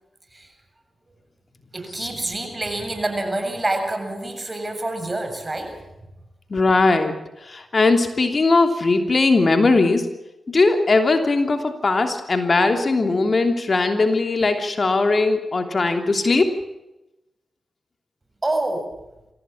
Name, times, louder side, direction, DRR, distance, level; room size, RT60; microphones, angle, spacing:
voice 1, 1.7-5.8 18.4-18.9, right 2 dB, 30° right, 6 dB, 7.4 m, -27 dB
voice 2, 6.5-10.1 10.5-16.5, left 3 dB, 50° left, 6 dB, 3.1 m, -19 dB
25.0 x 16.5 x 7.4 m, 0.95 s
supercardioid pair, 40°, 0 cm